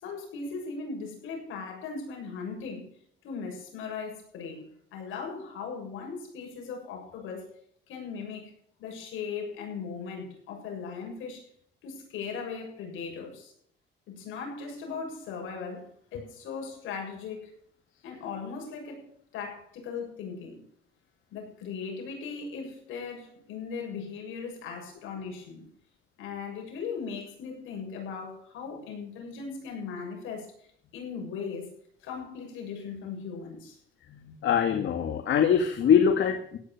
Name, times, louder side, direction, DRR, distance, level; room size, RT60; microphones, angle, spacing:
voice 1, 0.0-2.9 3.2-7.5 7.9-8.5 8.8-11.4 11.8-13.5 14.1-17.6 18.0-20.6 21.3-25.7 26.2-30.5 30.9-31.7 32.0-33.8, left 5 dB, 85° left, 1 dB, 7.3 m, -38 dB
voice 2, 34.1-36.6, left 7 dB, 70° left, 6 dB, 1.8 m, -23 dB
16.5 x 9.9 x 5.9 m, 0.62 s
cardioid pair, 90°, 20 cm